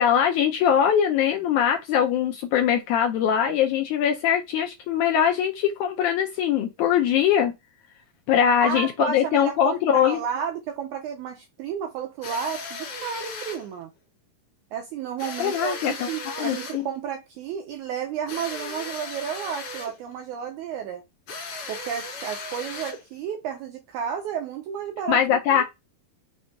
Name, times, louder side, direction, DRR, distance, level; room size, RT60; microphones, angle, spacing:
voice 1, 0.0-7.5 8.3-10.2 15.4-16.9 25.1-25.6, left 9 dB, 80° left, 1.8 m, -22 dB
voice 2, 8.6-13.9 14.7-21.0 21.7-25.6, right 8 dB, 80° right, 1.8 m, -32 dB
sound 1, 12.2-13.7 15.2-16.9 18.3-20.0 21.3-23.1, left 3 dB, 55° left, 1.9 m, -36 dB
6.0 x 2.6 x 3.4 m
omnidirectional pair, 4.1 m